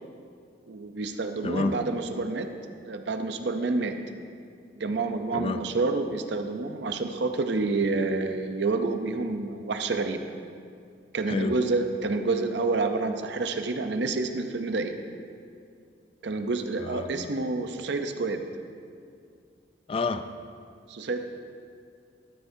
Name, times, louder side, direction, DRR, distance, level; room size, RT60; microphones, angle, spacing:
voice 1, 0.7-2.5 2.9-3.9 4.8-10.2 11.1-14.9 16.2-18.4 20.9-21.2, right 3 dB, 65° right, 7 dB, 0.6 m, -28 dB
voice 2, 1.4-1.7 5.3-5.6 11.3-11.6 16.8-17.3 19.9-20.2, left 3 dB, 30° left, 10 dB, 0.3 m, -29 dB
13.0 x 9.1 x 2.7 m, 2.3 s
head